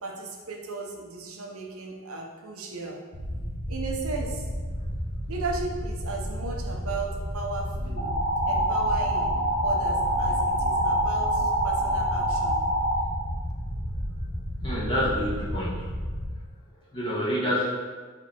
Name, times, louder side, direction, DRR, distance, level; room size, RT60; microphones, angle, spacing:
voice 1, 0.0-3.0 3.7-4.5 5.3-8.2 8.5-9.3 9.6-12.6, right 3 dB, 70° right, 1 dB, 0.9 m, -35 dB
sound 1, 3.1-16.3, equal, 90° left, 1.4 m, -32 dB
sound 2, 8.0-13.0, right 1 dB, 50° left, 1.5 m, -25 dB
voice 2, 14.6-15.9 16.9-17.6, equal, 25° left, -9 dB, 1.6 m, -27 dB
6.2 x 3.5 x 4.4 m, 1.5 s
head